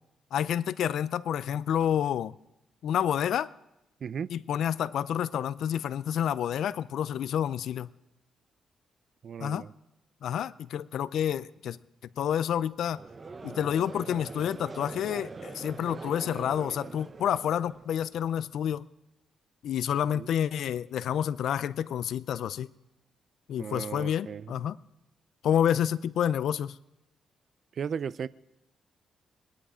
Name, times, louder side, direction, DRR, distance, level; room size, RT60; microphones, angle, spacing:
voice 1, 0.3-2.3 2.8-3.5 4.3-7.9 9.4-9.6 10.2-11.8 12.2-13.0 13.4-18.9 19.6-22.7 23.5-24.8 25.4-26.8, left 9 dB, 80° left, 0.4 m, -29 dB
voice 2, 4.0-4.3 9.2-9.7 20.1-20.3 23.6-24.6 27.7-28.3, right 7 dB, 55° right, 0.4 m, -35 dB
Conversation / Crowd, 12.9-18.2, right 4 dB, 30° right, 0.8 m, -42 dB
22.5 x 10.5 x 5.0 m
cardioid pair, 100°, 0 cm